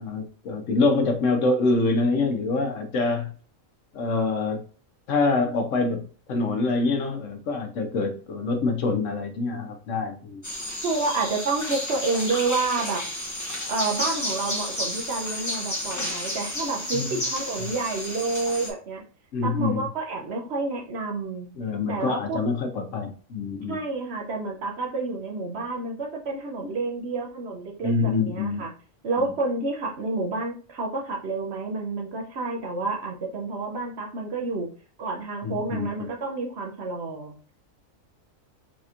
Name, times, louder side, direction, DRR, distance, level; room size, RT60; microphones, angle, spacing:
voice 1, 0.0-3.3 3.9-4.6 5.1-10.4 16.9-17.2 19.3-19.9 21.6-23.8 27.8-28.6 35.4-35.9, left 3 dB, 70° left, 5 dB, 1.1 m, -25 dB
sound 1, 10.4-18.7, left 1 dB, 20° left, 0.6 m, -32 dB
voice 2, 10.8-13.0 13.7-19.0 19.4-21.5 21.9-22.4 23.7-28.7 29.0-34.7 35.0-37.3, right 3 dB, 60° right, 1 dB, 0.9 m, -29 dB
4.1 x 2.9 x 2.4 m, 0.40 s
omnidirectional pair, 1.4 m